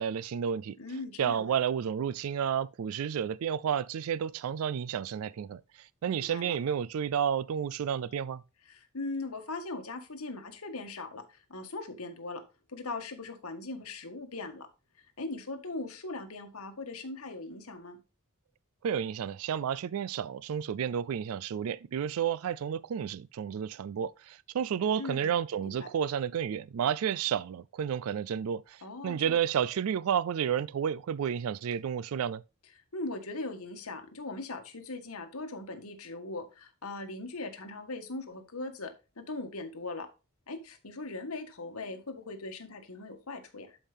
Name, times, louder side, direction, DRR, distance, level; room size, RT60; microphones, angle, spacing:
voice 1, 0.0-0.8 1.2-8.4 18.8-32.4, right 8 dB, 80° right, 0.3 m, -31 dB
voice 2, 0.8-1.5 6.1-6.6 8.6-12.4 12.7-14.7 15.2-18.0 25.0-25.3 25.6-25.9 28.8-29.4 32.9-40.1 40.5-43.8, left 2 dB, 90° left, 1.7 m, -40 dB
11.5 x 5.4 x 3.5 m
head